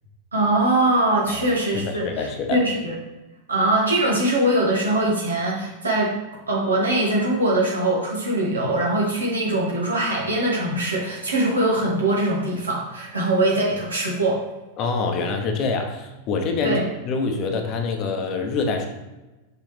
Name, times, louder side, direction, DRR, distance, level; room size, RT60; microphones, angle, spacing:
voice 1, 0.3-2.9 3.5-6.2 6.5-14.4 16.6-16.9, right 1 dB, 75° right, -4 dB, 2.0 m, -22 dB
voice 2, 1.7-2.6 14.8-16.8 17.0-18.9, left 4 dB, 35° left, 4 dB, 1.0 m, -25 dB
6.4 x 5.4 x 3.4 m, 1.1 s
figure-of-eight pair, 90°, 0 cm